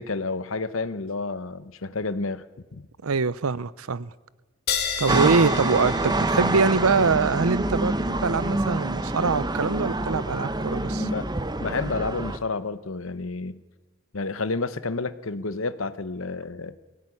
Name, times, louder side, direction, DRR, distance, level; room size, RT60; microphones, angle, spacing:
voice 1, 0.0-2.4 2.7-2.8 10.9-11.3 11.6-13.6 14.1-16.7, left 3 dB, 65° left, 1.1 m, -30 dB
voice 2, 3.0-4.1 5.0-11.1, right 4 dB, 90° right, 0.7 m, -24 dB
sound 1, 4.7-11.7, left 6 dB, 50° left, 2.4 m, -36 dB
sound 2, 5.1-12.4, right 2 dB, 20° right, 1.0 m, -26 dB
21.5 x 17.0 x 9.8 m
head